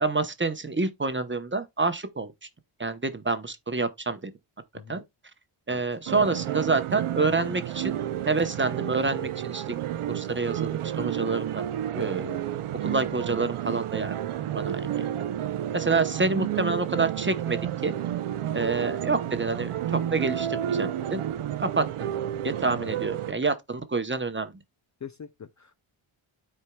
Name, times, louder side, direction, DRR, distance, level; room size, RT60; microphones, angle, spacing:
voice 1, 0.0-2.3 2.8-4.3 4.9-5.0 5.7-8.0 8.3-9.8 10.1-11.6 11.9-12.4 12.8-14.1 14.5-15.1 15.7-18.0 18.5-21.2 21.6-22.1 22.4-24.5, right 3 dB, 25° right, 0.8 m, -28 dB
sound 1, 6.1-23.3, right 11 dB, 80° right, 0.6 m, -31 dB
voice 2, 25.0-25.7, left 7 dB, 40° left, 0.4 m, -42 dB
13.0 x 4.5 x 2.2 m
wide cardioid pair, 115°, 50 cm